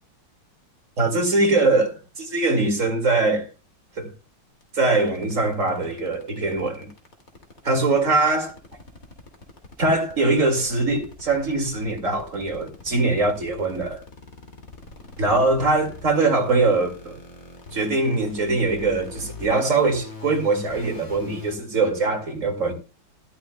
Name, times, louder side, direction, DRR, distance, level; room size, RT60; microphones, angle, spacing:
voice 1, 1.0-3.5 4.0-4.1 4.7-6.9 7.6-8.5 9.8-14.0 15.2-17.2 17.7-22.7, right 3 dB, 40° right, 2.4 m, -22 dB
sound 1, 4.6-21.6, left 3 dB, 45° left, 2.7 m, -41 dB
13.0 x 13.0 x 2.2 m
omnidirectional pair, 2.1 m